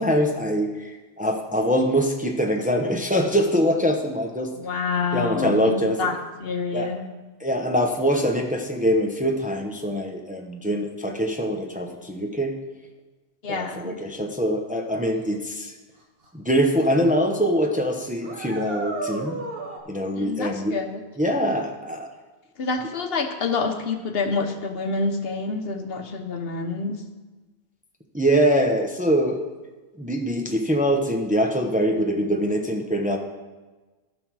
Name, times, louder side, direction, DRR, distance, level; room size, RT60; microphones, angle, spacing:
voice 1, 0.0-4.5 5.1-6.0 6.7-6.9 7.4-12.5 13.5-15.7 16.3-19.4 19.9-20.8 21.2-22.1 28.1-29.4 30.0-33.2, equal, 10° right, 2 dB, 0.7 m, -23 dB
voice 2, 4.6-7.0 13.4-13.9 20.2-21.0 22.6-27.0, left 4 dB, 65° left, 6 dB, 1.1 m, -27 dB
sound 1, 16.2-16.3 16.8-17.1 17.3-17.4 18.2-19.8, right 2 dB, 60° right, 1.7 m, -32 dB
14.0 x 6.1 x 4.7 m, 1.2 s
omnidirectional pair, 1.1 m